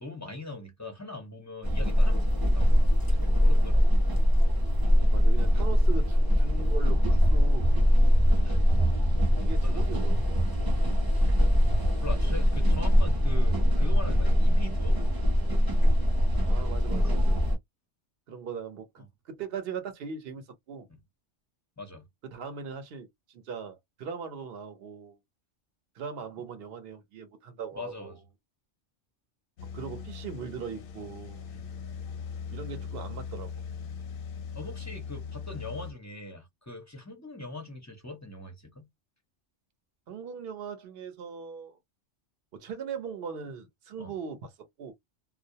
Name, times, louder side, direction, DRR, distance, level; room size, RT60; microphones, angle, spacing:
voice 1, 0.0-4.0 8.4-8.6 9.6-10.0 12.0-15.0 17.0-17.2 20.9-21.0 21.8-22.1 27.8-28.2 31.5-31.6 32.1-32.3 33.8-34.0 34.5-38.9 44.0-44.2, left 2 dB, 20° left, 0.5 m, -42 dB
sound 1, 1.6-17.6, equal, 25° right, 0.6 m, -22 dB
voice 2, 5.1-7.7 9.4-10.5 16.4-17.4 18.3-20.9 22.3-25.2 26.0-28.2 29.7-31.5 32.5-33.5 40.1-41.8 42.5-44.5 44.8-44.9, right 6 dB, 60° right, 0.9 m, -39 dB
sound 2, 29.6-35.9, left 6 dB, 60° left, 0.6 m, -39 dB
2.3 x 2.0 x 2.7 m
omnidirectional pair, 1.2 m